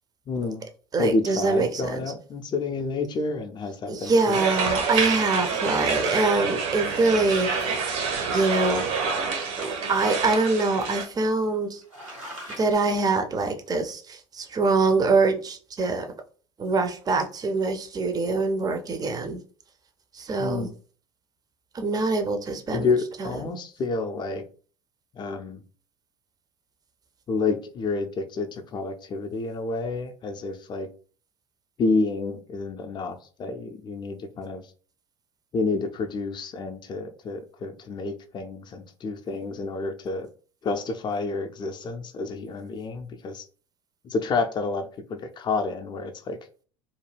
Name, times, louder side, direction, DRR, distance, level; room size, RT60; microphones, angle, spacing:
voice 1, 0.3-0.7 1.0-4.6 20.4-20.7 22.7-24.4 25.1-25.6 27.3-30.9 31.8-34.7 35.5-40.3 40.6-43.5 44.0-46.4, left 3 dB, 30° left, 0.5 m, -29 dB
voice 2, 0.9-2.0 3.9-7.5 8.3-8.9 9.6-11.8 12.5-16.1 16.6-19.4 20.1-20.7 21.7-22.9 23.2-23.3, right 3 dB, 25° right, 0.5 m, -24 dB
sound 1, 4.0-4.5 5.0-5.1 5.5-5.6 5.9-6.8 7.4-8.3 8.9-10.5 10.8-10.9 11.4-11.6 11.8-12.7, equal, 90° right, 1.3 m, -42 dB
sound 2, 4.3-11.0, right 5 dB, 60° right, 0.7 m, -27 dB
2.5 x 2.2 x 3.2 m
figure-of-eight pair, 70°, 16 cm